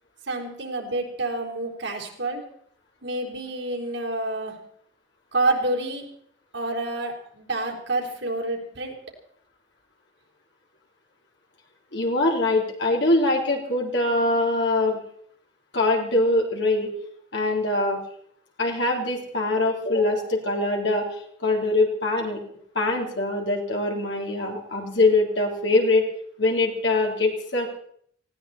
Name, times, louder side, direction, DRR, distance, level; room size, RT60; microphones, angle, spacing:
voice 1, 0.3-2.4 3.0-4.5 5.3-6.0 6.5-8.9, right 2 dB, 85° right, 0 dB, 4.1 m, -28 dB
voice 2, 11.9-15.0 15.7-16.9 17.3-18.0 18.6-21.1 21.4-22.4 22.8-26.0 26.4-27.7, left 2 dB, 75° left, 0 dB, 3.7 m, -23 dB
19.5 x 16.5 x 4.3 m, 0.64 s
head